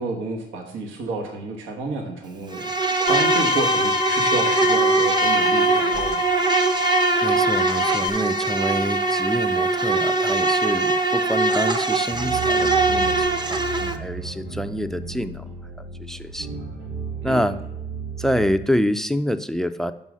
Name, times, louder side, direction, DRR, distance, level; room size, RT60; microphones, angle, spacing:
voice 1, 0.0-6.2 17.2-17.5, right 2 dB, 80° right, 2 dB, 1.3 m, -30 dB
Insect, 2.5-14.0, right 3 dB, 20° right, 0.7 m, -21 dB
Bowed string instrument, 3.1-8.1, left 8 dB, 80° left, 0.5 m, -27 dB
voice 2, 7.2-15.4 15.8-16.5 17.2-17.6 18.2-19.9, equal, ahead, 12 dB, 0.4 m, -26 dB
sound 1, 12.1-18.7, right 5 dB, 55° right, 2.1 m, -34 dB
5.4 x 5.4 x 6.2 m, 0.86 s
cardioid pair, 90°, 20 cm